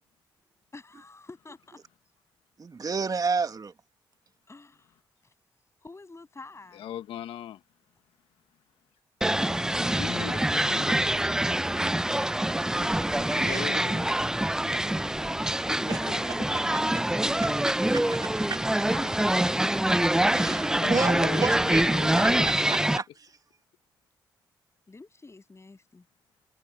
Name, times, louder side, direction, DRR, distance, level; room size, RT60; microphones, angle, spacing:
voice 1, 0.7-1.8 4.5-5.0 5.2-5.3 5.8-6.9 18.9-20.6 24.9-26.1, left 3 dB, 30° left, 7.7 m, -49 dB
voice 2, 2.6-3.7 13.1-13.9 14.6-14.8 15.9-16.1 16.5-16.8 17.4-17.5 17.9-18.6 20.3-21.8 22.2-23.3, right 4 dB, 40° right, 1.6 m, -32 dB
voice 3, 6.7-7.6 9.8-10.9 13.3-14.1 15.7-16.0 17.2-17.3 17.6-18.2 20.8-22.8, left 12 dB, 85° left, 1.4 m, -39 dB
sound 1, 9.2-23.0, right 1 dB, 5° right, 0.5 m, -25 dB
supercardioid pair, 55°, 9 cm